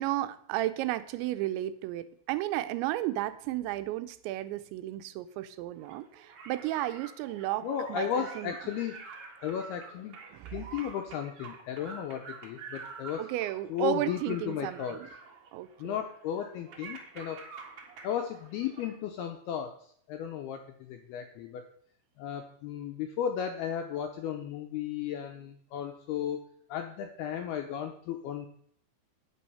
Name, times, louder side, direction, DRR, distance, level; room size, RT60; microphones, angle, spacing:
voice 1, 0.0-8.1 8.4-8.5 10.3-10.5 13.2-15.1 15.5-16.0, right 15 dB, 85° right, 10 dB, 2.8 m, -33 dB
sound 1, 5.8-19.0, right 4 dB, 50° right, 1.8 m, -48 dB
voice 2, 7.6-9.0 9.4-10.2 10.5-13.3 13.7-15.0 15.8-17.4 18.0-20.6 20.9-21.7 22.2-26.4 26.7-28.5, left 9 dB, 85° left, 6 dB, 2.3 m, -35 dB
10.0 x 8.3 x 5.6 m, 0.63 s
omnidirectional pair, 5.4 m